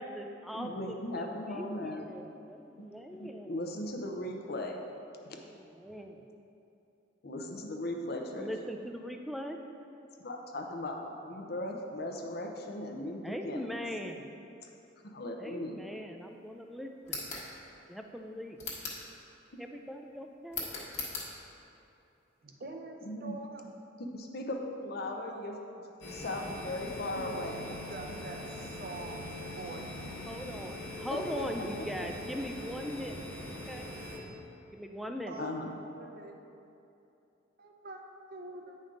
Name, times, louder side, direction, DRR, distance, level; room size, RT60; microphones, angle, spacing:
voice 1, 0.0-0.7 1.2-1.3 1.5-2.2 2.5-3.5 5.8-6.2 8.4-9.6 13.2-14.2 15.4-17.2 17.9-18.6 19.6-20.7 30.3-33.3 33.7-33.9 34.7-35.4, equal, ahead, 4 dB, 0.4 m, -40 dB
voice 2, 0.5-2.1 3.2-4.8 5.2-5.4 7.2-8.5 10.2-13.8 14.6-14.7 15.0-15.8 19.5-19.6 23.0-23.4 24.1-25.6 26.1-27.8 31.1-31.7 35.4-35.8, left 1 dB, 55° left, 2 dB, 0.7 m, -38 dB
sound 1, 17.0-17.5 18.6-19.1 20.5-21.3, left 4 dB, 40° left, 1.5 m, -38 dB
voice 3, 22.4-23.7 27.1-29.3 29.5-29.9 35.3-35.6 35.9-36.4 37.6-38.8, right 2 dB, 50° right, 3 dB, 0.7 m, -45 dB
sound 2, 26.0-34.2, left 1 dB, 75° left, 1.3 m, -42 dB
8.9 x 5.3 x 3.8 m, 2.8 s
head